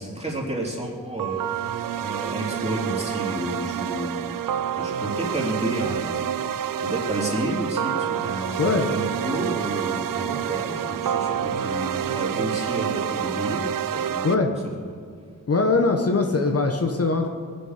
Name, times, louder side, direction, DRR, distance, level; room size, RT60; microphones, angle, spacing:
voice 1, 0.0-4.3 4.7-6.5 6.8-14.5, right 1 dB, 20° right, -3 dB, 3.4 m, -31 dB
sound 1, 1.2-14.3, right 9 dB, 85° right, 0.6 m, -28 dB
voice 2, 15.5-17.3, left 3 dB, 45° left, 4 dB, 1.2 m, -21 dB
19.5 x 10.0 x 6.6 m, 2.2 s
wide cardioid pair, 90°, 32 cm